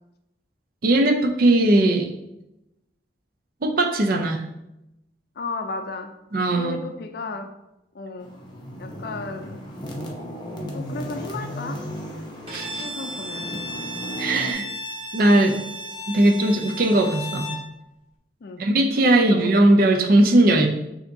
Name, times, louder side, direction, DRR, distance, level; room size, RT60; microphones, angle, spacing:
voice 1, 0.8-2.1 3.6-4.4 6.3-6.8 12.5-12.9 14.2-14.6 15.1-15.6 16.1-17.5 18.6-20.7, right 1 dB, 50° right, 3 dB, 0.5 m, -19 dB
voice 2, 5.4-6.1 6.5-7.5 7.9-8.4 8.8-9.6 10.7-11.8 12.8-13.5 18.4-18.7 19.3-19.5, left 3 dB, 55° left, 6 dB, 0.4 m, -34 dB
sound 1, 8.2-14.5, equal, 25° left, 0.7 m, -35 dB
Bowed string instrument, 12.5-17.7, left 1 dB, 30° right, 1.1 m, -35 dB
6.6 x 2.8 x 2.7 m, 0.88 s
head